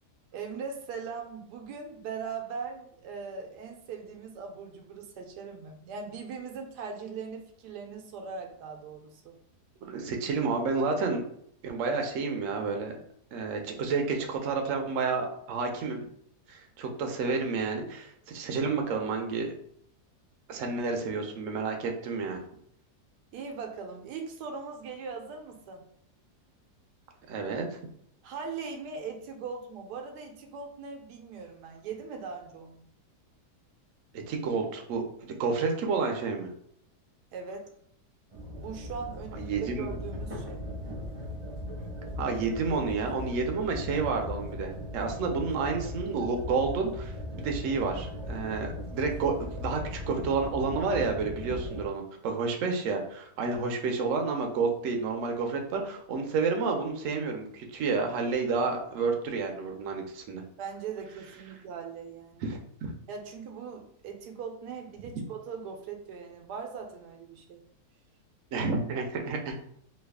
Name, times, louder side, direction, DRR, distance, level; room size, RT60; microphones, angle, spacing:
voice 1, 0.3-9.4 23.3-25.9 28.2-32.8 37.3-37.7 38.6-40.7 60.6-62.4 63.1-67.6, right 5 dB, 85° right, 3 dB, 1.2 m, -40 dB
voice 2, 9.8-11.2 11.6-13.0 13.3-16.1 16.5-19.5 20.5-22.4 27.3-27.8 34.3-36.5 39.4-39.9 42.2-47.1 47.4-60.4 62.4-62.6 68.5-69.6, right 4 dB, 65° right, 3 dB, 0.8 m, -30 dB
sound 1, 38.3-51.9, left 1 dB, 30° right, 0.7 m, -38 dB
3.1 x 2.3 x 3.4 m, 0.67 s
omnidirectional pair, 1.7 m